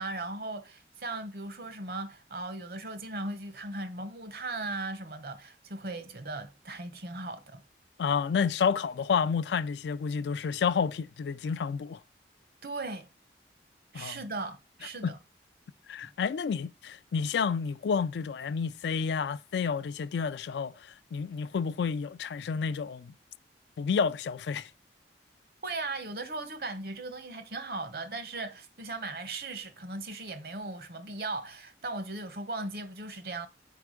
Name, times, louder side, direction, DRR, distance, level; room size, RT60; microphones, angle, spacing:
voice 1, 0.0-7.6 12.6-13.1 13.9-15.2 25.6-33.5, right 2 dB, 55° right, 0.8 m, -38 dB
voice 2, 8.0-12.0 13.9-14.2 15.0-15.1 15.9-20.7 21.1-23.1 23.8-24.7, left 6 dB, 75° left, 0.3 m, -30 dB
4.7 x 4.4 x 4.8 m
head